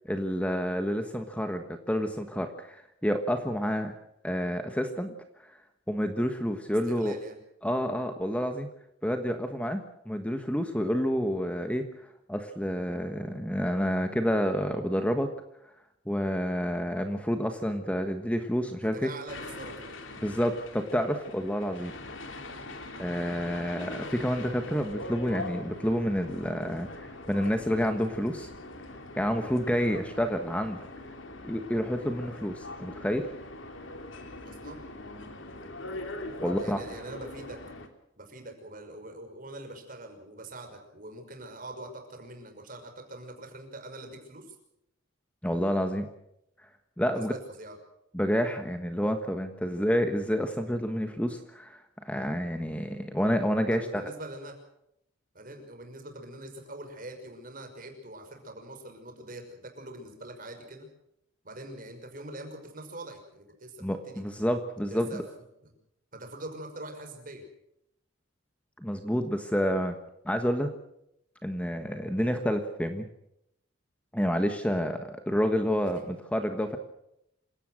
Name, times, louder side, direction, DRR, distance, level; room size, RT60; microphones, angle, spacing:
voice 1, 0.0-4.0 4.2-5.1 5.4-5.5 5.9-7.1 7.6-8.7 9.0-11.8 12.3-15.3 16.1-19.1 20.2-21.9 23.0-28.5 29.2-30.9 31.4-33.3 36.4-36.8 45.4-46.1 47.0-47.3 48.1-54.0 63.8-65.2 68.8-69.9 70.2-70.7 71.4-73.1 74.1-76.8, equal, 5° left, 6 dB, 1.4 m, -29 dB
voice 2, 6.9-7.4 18.8-20.0 34.5-34.8 36.4-37.6 38.2-44.6 47.1-47.8 53.7-54.6 55.3-60.9 61.4-64.2 64.9-65.2 65.6-65.7 66.1-67.5 75.9-76.1, right 1 dB, 45° right, 4 dB, 5.8 m, -43 dB
sound 1, 19.3-37.9, left 2 dB, 75° left, 3.1 m, -42 dB
27.5 x 17.0 x 6.3 m, 0.78 s
head